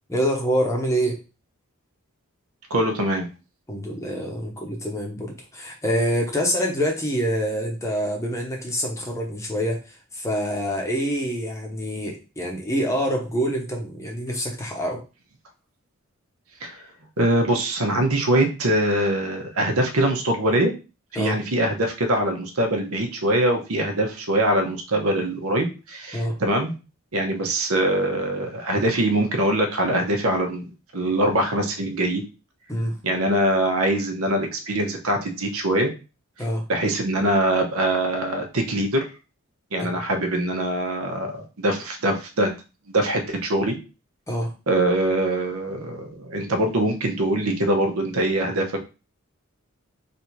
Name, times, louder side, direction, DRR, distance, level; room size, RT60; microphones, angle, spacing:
voice 1, 0.1-1.2 3.7-15.0 21.1-21.4 26.1-26.4 32.7-33.0 36.4-36.7 39.8-39.9 44.3-44.5, equal, 15° left, 0 dB, 0.8 m, -26 dB
voice 2, 2.7-3.3 16.6-16.8 17.2-20.7 21.1-26.7 27.1-32.2 33.0-35.9 36.7-39.0 39.7-42.6 42.9-43.8 44.7-48.8, right 1 dB, 75° right, 4 dB, 0.9 m, -23 dB
3.4 x 2.7 x 4.5 m, 0.31 s
head